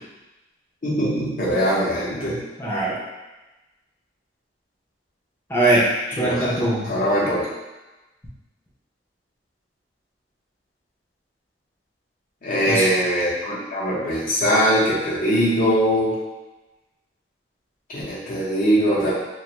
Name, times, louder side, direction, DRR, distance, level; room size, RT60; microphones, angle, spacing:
voice 1, 0.8-2.4 6.2-7.4 12.4-16.1 17.9-19.1, equal, 45° left, -7 dB, 0.8 m, -21 dB
voice 2, 2.6-3.0 5.5-6.9 12.7-12.8, right 1 dB, 10° left, -7 dB, 0.6 m, -21 dB
2.5 x 2.3 x 2.9 m, 1.1 s
head